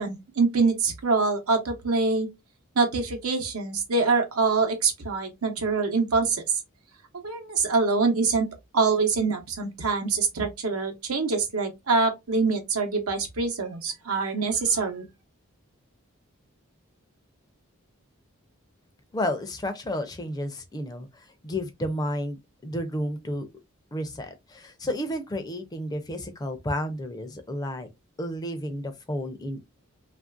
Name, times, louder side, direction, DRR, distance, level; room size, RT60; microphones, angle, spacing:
voice 1, 0.0-2.3 2.8-6.4 7.2-8.5 8.7-15.0, right 4 dB, 90° right, 0.8 m, -25 dB
voice 2, 19.1-23.5 23.9-27.9 28.2-29.6, left 1 dB, 20° left, 0.4 m, -31 dB
3.1 x 2.5 x 2.3 m
head